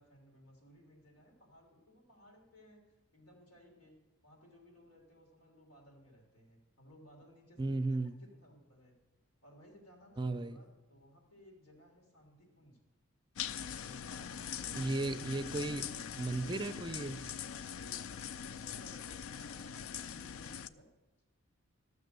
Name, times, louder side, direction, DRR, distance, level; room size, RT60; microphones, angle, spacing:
voice 1, 0.0-3.9 4.2-8.9 9.4-12.8 13.8-15.6 17.7-19.0 19.3-20.9, equal, 85° left, 1 dB, 3.2 m, -60 dB
voice 2, 7.6-8.1 10.2-10.6 14.7-15.8 16.1-17.2, right 2 dB, 20° right, 10 dB, 0.4 m, -35 dB
sound 1, 13.4-20.7, left 8 dB, 70° left, 0.4 m, -42 dB
13.0 x 6.8 x 6.7 m, 1.1 s
head